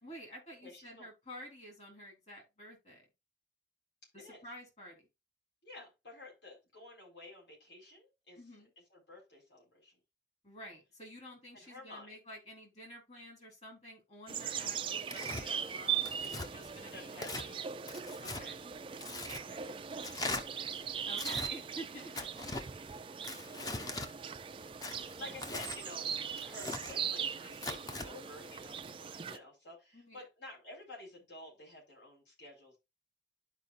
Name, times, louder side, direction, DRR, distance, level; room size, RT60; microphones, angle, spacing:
voice 1, 0.0-3.0 4.1-5.1 8.4-8.7 10.4-17.6 18.2-18.6 19.4-19.6 21.1-22.1 25.1-25.3 29.9-30.2, equal, 40° left, 3.5 m, -50 dB
voice 2, 0.6-1.1 4.2-4.4 5.6-10.0 11.5-12.1 15.3-15.8 16.7-17.6 18.4-20.4 22.3-32.8, left 1 dB, 75° left, 4.6 m, -53 dB
sound 1, 14.3-29.4, right 7 dB, 30° right, 0.4 m, -40 dB
Tearing, 15.1-15.4 16.0-16.5 17.1-17.5 17.9-18.4 19.0-19.4 20.0-20.4 21.1-21.5 22.1-22.7 23.2-24.1 24.8-25.8 26.4-26.9 27.5-28.1, left 2 dB, 20° left, 0.8 m, -40 dB
12.0 x 4.8 x 2.5 m
head